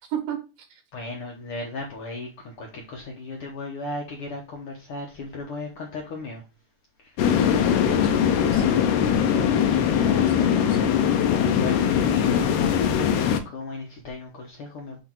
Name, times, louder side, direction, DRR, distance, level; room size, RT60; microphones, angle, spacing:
voice 1, 0.9-6.4 7.0-7.5 11.3-15.0, left 2 dB, 65° left, 1.4 m, -37 dB
sound 1, 7.2-13.4, left 8 dB, 85° left, 2.4 m, -21 dB
voice 2, 7.6-8.8 10.0-11.0, right 8 dB, 85° right, 3.1 m, -35 dB
7.8 x 3.2 x 4.4 m
omnidirectional pair, 3.8 m